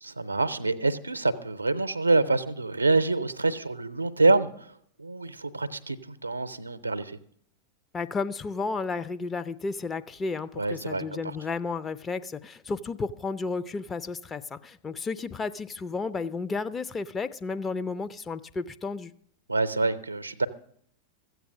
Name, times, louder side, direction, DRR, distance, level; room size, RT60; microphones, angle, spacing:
voice 1, 0.0-7.2 10.6-11.3 19.5-20.5, right 3 dB, 80° right, 13 dB, 0.6 m, -26 dB
voice 2, 7.9-19.1, left 4 dB, 20° left, 11 dB, 0.5 m, -32 dB
14.0 x 8.1 x 6.3 m, 0.64 s
figure-of-eight pair, 90°, 0 cm